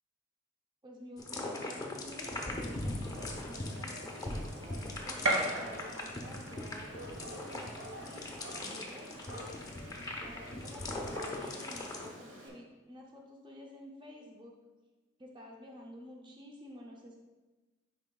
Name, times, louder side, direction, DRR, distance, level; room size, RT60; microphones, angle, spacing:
voice 1, 0.8-6.9 7.3-8.3 8.6-9.5 10.2-14.6 15.2-17.2, equal, 20° right, 0 dB, 0.5 m, -50 dB
sound 1, 1.2-12.1, left 2 dB, 15° left, 0.7 m, -40 dB
Gunshot gunfire, 2.5-12.5, right 1 dB, 65° right, 1.3 m, -41 dB
9.8 x 4.8 x 2.3 m, 1.2 s
head